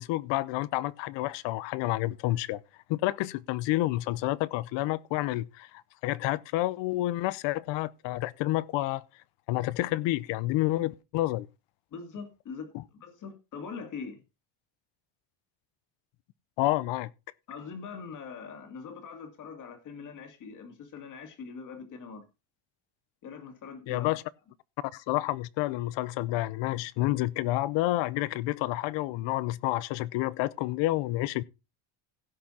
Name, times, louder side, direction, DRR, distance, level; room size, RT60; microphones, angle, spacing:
voice 1, 0.0-2.6 2.9-9.0 9.5-11.5 16.6-17.1 23.9-24.2 24.9-31.4, left 17 dB, 60° left, 0.8 m, -29 dB
voice 2, 11.9-14.2 17.5-22.3 23.2-24.1, left 5 dB, 40° left, 2.5 m, -42 dB
16.5 x 6.1 x 4.2 m
cardioid pair, 170°, 49 cm